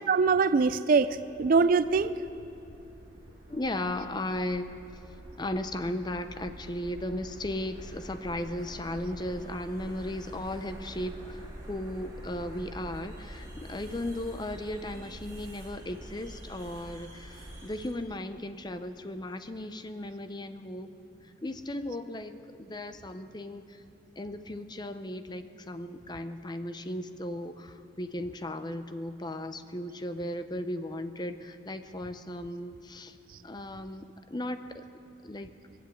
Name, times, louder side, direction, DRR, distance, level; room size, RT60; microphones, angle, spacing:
voice 1, 0.1-2.2, right 4 dB, 50° right, 15 dB, 0.4 m, -23 dB
sound 1, 1.2-17.9, right 1 dB, 20° right, 2.9 m, -46 dB
voice 2, 3.5-5.1 5.4-11.4 11.7-20.9 21.2-23.8 24.2-33.2 33.4-34.8 35.2-35.5, left 1 dB, 25° left, 10 dB, 0.6 m, -36 dB
21.0 x 7.9 x 8.3 m, 2.7 s
head